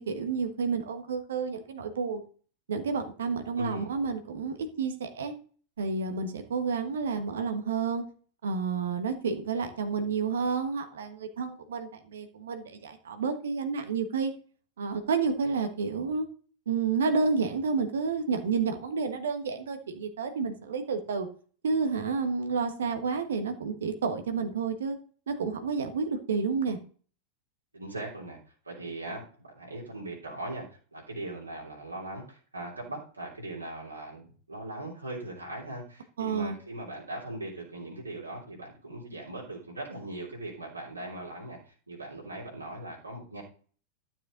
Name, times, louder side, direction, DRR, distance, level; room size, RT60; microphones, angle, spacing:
voice 1, 0.0-2.2 2.7-5.3 5.8-8.0 8.4-14.3 14.8-16.3 16.7-21.3 21.6-25.0 25.3-26.8 36.2-36.5, right 5 dB, 65° right, 7 dB, 1.4 m, -30 dB
voice 2, 3.6-3.9 27.7-28.4 28.6-43.4, right 1 dB, 80° right, -4 dB, 3.3 m, -40 dB
12.0 x 7.5 x 3.9 m, 0.43 s
figure-of-eight pair, 90°, 0 cm